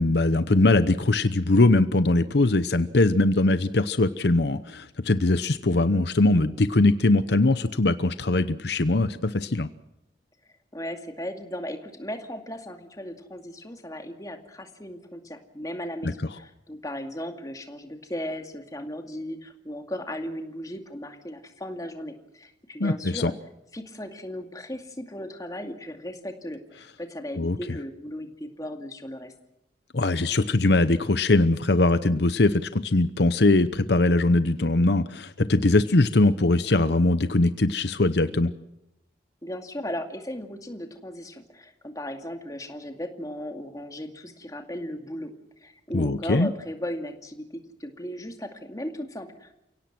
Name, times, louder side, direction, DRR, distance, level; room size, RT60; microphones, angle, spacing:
voice 1, 0.0-9.7 16.0-16.1 22.8-23.3 27.4-27.6 29.9-38.5 45.9-46.5, left 2 dB, 65° left, 12 dB, 0.9 m, -21 dB
voice 2, 10.7-23.3 23.7-29.3 39.4-45.3 45.6-49.6, left 1 dB, 20° left, 5 dB, 2.3 m, -36 dB
29.5 x 17.5 x 6.1 m, 0.87 s
head